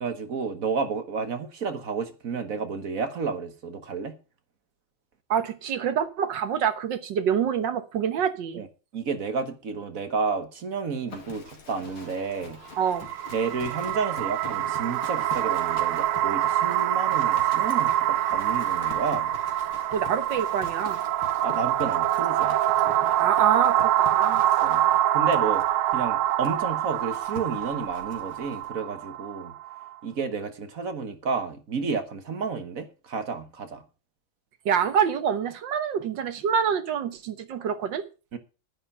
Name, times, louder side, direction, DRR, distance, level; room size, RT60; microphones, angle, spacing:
voice 1, 0.0-4.1 8.6-8.7 8.9-12.6 13.3-19.3 21.4-22.6 24.6-24.8 25.1-29.5 30.0-33.8 38.3-38.4, right 5 dB, 45° right, 1.4 m, -31 dB
voice 2, 5.3-8.6 12.8-13.1 19.9-21.0 23.2-24.4 34.6-38.0, right 8 dB, 65° right, 1.7 m, -26 dB
Livestock farm animals working animals, 11.1-28.7, left 5 dB, 85° left, 2.9 m, -45 dB
sound 1, 12.8-29.9, right 12 dB, 85° right, 1.6 m, -25 dB
10.0 x 10.0 x 5.6 m
omnidirectional pair, 2.3 m